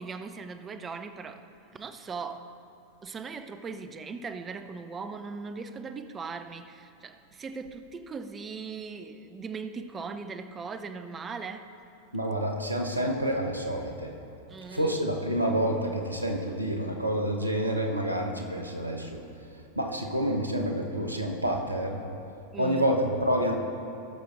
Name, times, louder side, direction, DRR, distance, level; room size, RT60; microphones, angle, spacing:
voice 1, 0.0-1.5 1.7-2.5 3.0-11.7 14.5-15.0 22.5-23.0, right 5 dB, 20° right, 9 dB, 0.6 m, -39 dB
voice 2, 12.1-14.1 14.7-19.2 19.7-22.0 22.6-23.5, right 1 dB, 85° right, 2 dB, 1.1 m, -28 dB
17.5 x 6.6 x 3.9 m, 2.7 s
figure-of-eight pair, 90°, 0 cm